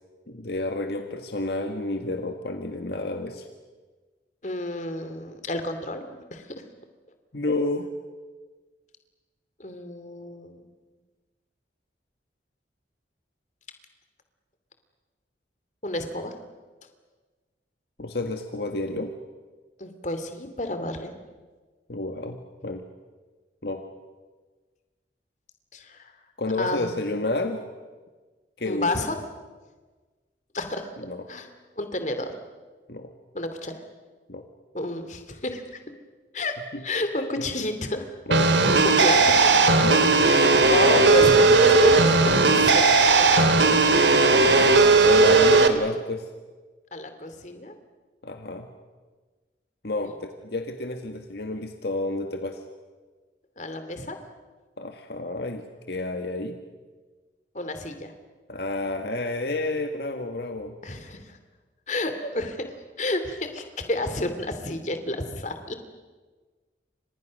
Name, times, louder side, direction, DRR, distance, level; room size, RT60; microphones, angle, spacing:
voice 1, 0.3-3.4 7.3-7.9 18.0-19.1 21.9-22.8 23.6-23.8 26.4-27.6 28.6-28.9 31.0-31.3 32.9-33.1 34.3-34.4 36.7-36.8 38.3-38.5 39.8-40.1 44.4-44.8 45.0-46.3 48.2-48.7 49.8-52.6 54.8-56.6 58.5-60.7, left 2 dB, 65° left, 5 dB, 1.7 m, -30 dB
voice 2, 4.4-6.6 9.6-10.6 15.8-16.3 19.8-21.1 25.7-26.1 26.6-27.0 28.6-29.2 30.5-30.9 31.3-31.5 31.8-32.3 33.3-33.8 34.7-35.8 36.3-38.1 38.8-39.5 40.1-42.8 43.2-43.3 46.9-47.7 50.0-50.1 53.6-54.2 57.5-58.1 60.8-61.4 61.9-62.7 63.0-65.7, left 1 dB, 40° left, 8 dB, 2.8 m, -30 dB
sound 1, 38.3-45.7, right 3 dB, 85° right, 2.4 m, -17 dB
30.0 x 26.0 x 6.5 m, 1.4 s
head